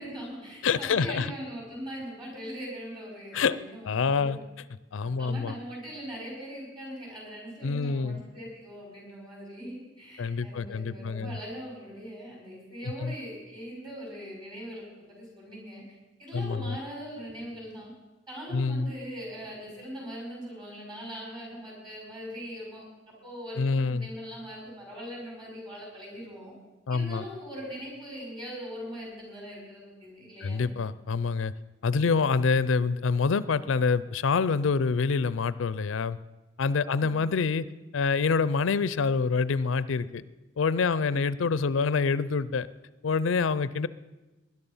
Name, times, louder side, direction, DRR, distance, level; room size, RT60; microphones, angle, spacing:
voice 1, 0.0-4.3 5.0-15.8 16.2-17.9 18.3-26.5 26.9-30.7 37.0-37.3 41.1-41.2, equal, 25° right, -2 dB, 6.2 m, -41 dB
voice 2, 0.6-1.3 3.3-3.6 3.8-4.4 4.9-5.5 7.6-8.2 10.2-11.3 13.0-13.1 16.3-16.8 18.5-18.9 23.6-24.1 26.9-27.2 30.4-31.5 31.8-36.2 36.6-37.6 37.9-40.2 40.6-42.7 43.0-43.9, left 5 dB, 85° left, 17 dB, 0.5 m, -26 dB
19.5 x 11.0 x 5.5 m, 1.1 s
head